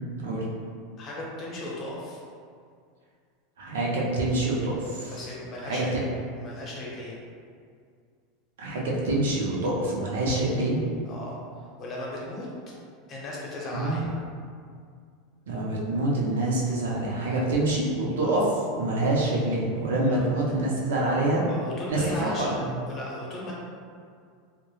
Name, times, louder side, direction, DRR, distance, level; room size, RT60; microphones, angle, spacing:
voice 1, 1.0-2.2 5.1-6.0 6.3-7.1 11.1-11.4 11.8-12.5 13.1-14.1 17.4-17.5 18.2-18.3 20.0-20.3 21.4-22.5 22.9-23.5, left 1 dB, 35° left, -4 dB, 0.7 m, -36 dB
voice 2, 3.6-5.2 5.6-6.0 8.6-10.8 13.7-14.0 15.5-21.4 21.9-22.7, right 2 dB, 85° right, -4 dB, 0.5 m, -26 dB
2.9 x 2.1 x 2.3 m, 2.2 s
hypercardioid pair, 110°, 0 cm